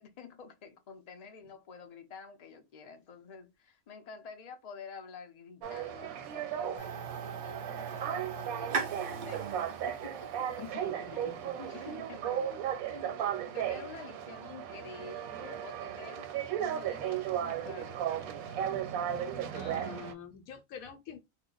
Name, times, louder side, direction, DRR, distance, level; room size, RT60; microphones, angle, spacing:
voice 1, 0.0-9.5 9.8-10.6 11.1-18.7, left 5 dB, 55° left, 0.4 m, -49 dB
sound 1, 5.6-20.1, right 10 dB, 85° right, 1.0 m, -36 dB
sound 2, 6.8-11.8, right 5 dB, 65° right, 0.4 m, -40 dB
voice 2, 10.6-11.5 19.5-21.2, left 7 dB, 80° left, 1.1 m, -46 dB
2.9 x 2.1 x 3.7 m
omnidirectional pair, 1.5 m